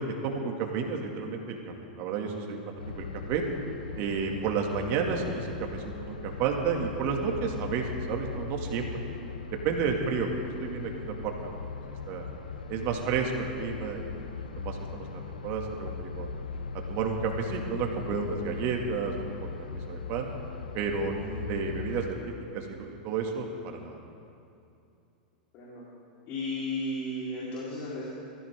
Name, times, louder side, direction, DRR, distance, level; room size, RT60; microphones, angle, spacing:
voice 1, 0.0-3.4 4.0-9.0 9.6-11.6 12.1-12.3 12.7-14.0 14.3-16.3 16.9-20.3 20.7-22.2 22.5-24.0, right 5 dB, 50° right, 2 dB, 2.5 m, -31 dB
sound 1, 2.8-22.1, left 5 dB, 90° left, 1.0 m, -39 dB
voice 2, 26.3-28.0, left 1 dB, 45° left, -6 dB, 4.2 m, -34 dB
23.0 x 15.0 x 3.8 m, 2.6 s
hypercardioid pair, 110°, 5 cm